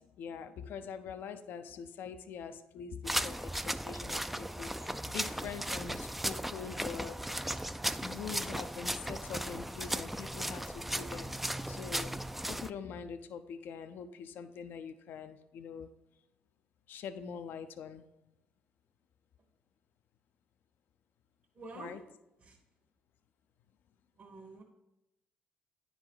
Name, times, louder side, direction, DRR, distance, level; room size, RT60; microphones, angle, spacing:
voice 1, 0.0-7.2 8.0-12.2 12.5-15.9 16.9-18.0 21.8-22.0, left 7 dB, 65° left, 9 dB, 0.4 m, -44 dB
sound 1, 3.1-12.7, right 1 dB, 5° right, 0.3 m, -36 dB
voice 2, 21.5-22.0 22.4-22.6 24.2-24.6, right 3 dB, 50° right, -2 dB, 1.4 m, -48 dB
9.6 x 4.0 x 4.5 m, 0.91 s
supercardioid pair, 65°, 4 cm